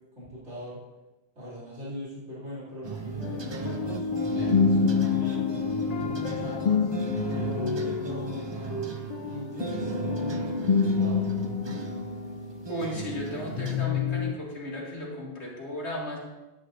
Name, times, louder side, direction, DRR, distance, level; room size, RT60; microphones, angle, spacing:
voice 1, 0.1-0.8 1.3-5.5 6.0-6.9 7.3-11.2, equal, 85° right, -8 dB, 3.2 m, -40 dB
sound 1, 2.8-13.9, right 5 dB, 30° right, 0.5 m, -36 dB
sound 2, 3.2-13.2 13.6-14.3, left 6 dB, 55° left, 0.4 m, -28 dB
voice 2, 12.7-16.2, left 1 dB, 70° left, -4 dB, 2.6 m, -35 dB
11.0 x 9.8 x 2.6 m, 1.0 s
omnidirectional pair, 1.2 m